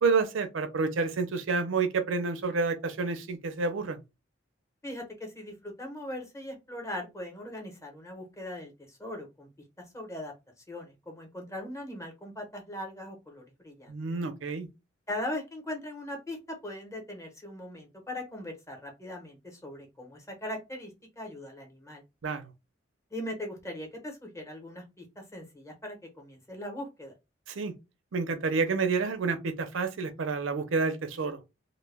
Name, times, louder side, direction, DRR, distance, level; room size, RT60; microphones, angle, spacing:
voice 1, 0.0-4.0 13.9-14.7 22.2-22.4 27.5-27.7 28.1-31.4, right 4 dB, 85° right, 0.5 m, -29 dB
voice 2, 4.8-9.5 9.9-10.3 10.7-13.9 15.1-16.4 16.6-20.9 21.2-22.0 23.1-27.1, left 1 dB, 15° left, 0.9 m, -40 dB
2.1 x 2.1 x 3.2 m
head